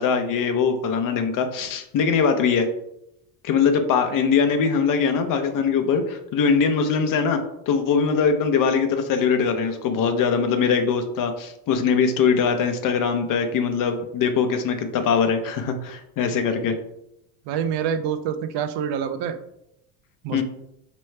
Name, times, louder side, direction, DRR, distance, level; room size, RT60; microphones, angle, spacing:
voice 1, 0.0-2.7 3.4-16.8 20.3-20.4, left 6 dB, 50° left, 7 dB, 0.7 m, -22 dB
voice 2, 17.5-19.4 20.2-20.4, right 8 dB, 65° right, 9 dB, 0.6 m, -26 dB
4.4 x 3.1 x 3.2 m, 0.80 s
supercardioid pair, 110°, 43 cm